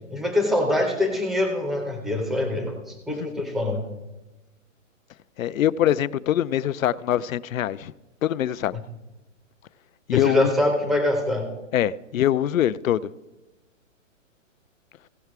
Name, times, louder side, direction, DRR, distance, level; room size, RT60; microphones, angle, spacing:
voice 1, 0.1-3.8 10.1-11.5, left 1 dB, ahead, 0.5 m, -24 dB
voice 2, 3.1-3.5 5.4-7.9 8.2-8.7 10.1-10.5 11.7-13.1, left 11 dB, 85° left, 0.6 m, -23 dB
16.5 x 5.7 x 4.7 m
hypercardioid pair, 150°, 39 cm